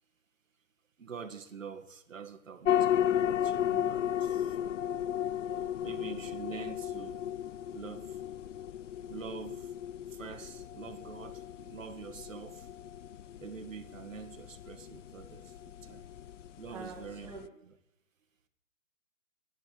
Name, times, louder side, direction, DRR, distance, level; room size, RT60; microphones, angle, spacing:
voice 1, 1.0-4.6 5.8-7.2 7.7-8.2 9.1-9.7 10.1-12.7 13.4-16.0 16.6-17.3 17.7-17.8, right 6 dB, 80° right, 2.1 m, -45 dB
sound 1, 2.6-17.5, left 10 dB, 65° left, 0.5 m, -34 dB
voice 2, 5.3-6.3 16.7-17.5, right 4 dB, 5° right, 2.8 m, -48 dB
11.5 x 11.0 x 8.4 m
hypercardioid pair, 170°, 39 cm